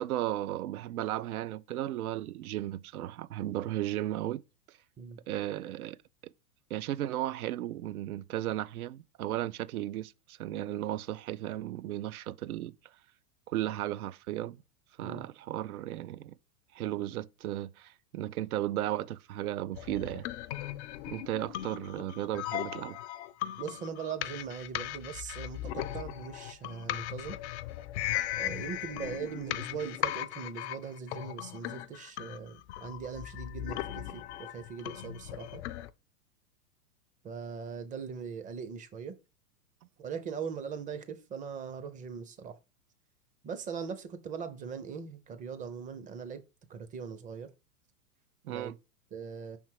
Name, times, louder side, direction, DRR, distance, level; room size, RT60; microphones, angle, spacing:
voice 1, 0.0-4.4 5.3-6.0 6.7-12.7 13.5-14.6 15.0-16.4 16.7-20.3 21.1-23.0 48.4-48.8, right 13 dB, 70° right, 0.6 m, -35 dB
sound 1, 19.7-35.9, left 14 dB, 50° left, 0.5 m, -38 dB
voice 2, 23.6-27.4 28.4-35.6 37.2-39.1 40.0-42.6 43.4-46.4 46.7-47.5 48.5-48.7 49.1-49.6, right 6 dB, 15° right, 0.6 m, -40 dB
5.7 x 3.6 x 4.5 m
hypercardioid pair, 115°, 46 cm